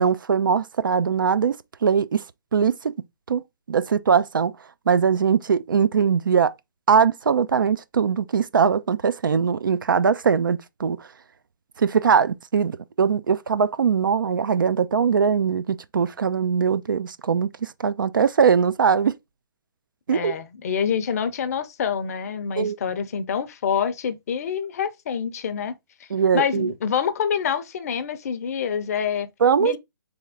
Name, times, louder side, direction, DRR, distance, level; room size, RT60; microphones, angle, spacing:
voice 1, 0.0-1.6 1.8-2.2 2.5-2.9 3.3-3.4 3.7-4.5 4.9-6.5 6.9-11.0 11.8-19.1 20.1-20.3 22.6-22.8 26.1-26.7 29.4-29.8, right 6 dB, 70° right, 0.4 m, -21 dB
voice 2, 20.1-25.7 26.3-29.3 29.6-29.8, left 7 dB, 45° left, 0.6 m, -26 dB
3.5 x 3.3 x 3.5 m
figure-of-eight pair, 130°, 11 cm